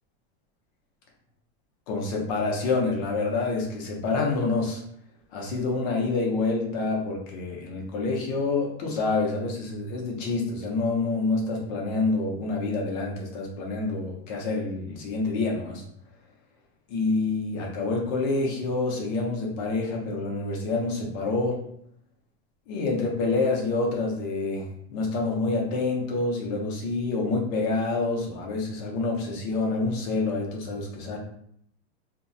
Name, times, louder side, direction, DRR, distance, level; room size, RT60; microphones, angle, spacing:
voice 1, 1.9-4.8 5.3-15.8 16.9-21.6 22.7-31.2, left 3 dB, 40° left, -1 dB, 0.6 m, -27 dB
2.5 x 2.0 x 2.6 m, 0.69 s
supercardioid pair, 170°, 32 cm